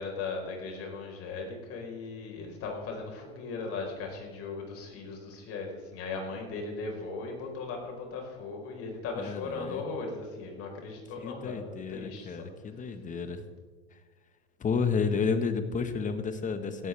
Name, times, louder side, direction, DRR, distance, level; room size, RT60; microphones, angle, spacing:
voice 1, 0.0-12.5, left 4 dB, 45° left, 1 dB, 4.7 m, -38 dB
voice 2, 9.2-9.8 11.2-13.4 14.6-16.9, left 5 dB, 25° left, 10 dB, 1.4 m, -31 dB
17.0 x 12.0 x 3.5 m, 1.4 s
hypercardioid pair, 105°, 33 cm